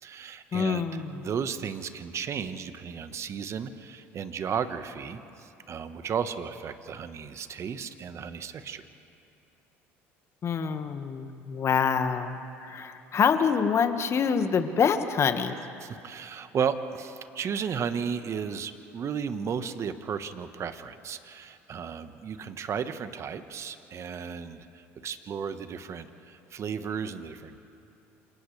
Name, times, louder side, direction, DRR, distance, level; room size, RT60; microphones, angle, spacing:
voice 1, 0.0-0.8 1.1-8.8 15.8-27.6, right 7 dB, 45° right, 10 dB, 1.3 m, -34 dB
voice 2, 0.5-1.2 10.4-15.6, left 6 dB, 40° left, 7 dB, 1.7 m, -26 dB
29.0 x 27.5 x 3.4 m, 2.7 s
hypercardioid pair, 70°, 7 cm